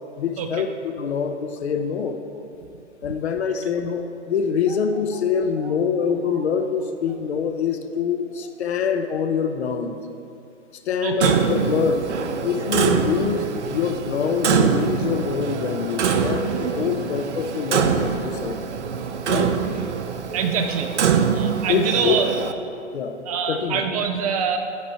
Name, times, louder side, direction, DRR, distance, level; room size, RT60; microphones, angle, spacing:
voice 1, 0.2-2.2 3.0-9.9 10.9-12.1 12.4-18.8 19.3-19.5 21.7-22.2 22.9-23.2 23.5-23.8, left 6 dB, 60° left, 7 dB, 0.7 m, -25 dB
voice 2, 11.0-11.3 16.9-17.0 18.5-18.7 20.3-20.9 21.3-22.3 23.2-24.6, right 6 dB, 30° right, 6 dB, 0.5 m, -25 dB
Clock, 11.2-22.5, right 6 dB, 65° right, 0.7 m, -24 dB
12.5 x 4.9 x 4.6 m, 2.7 s
figure-of-eight pair, 115°, 37 cm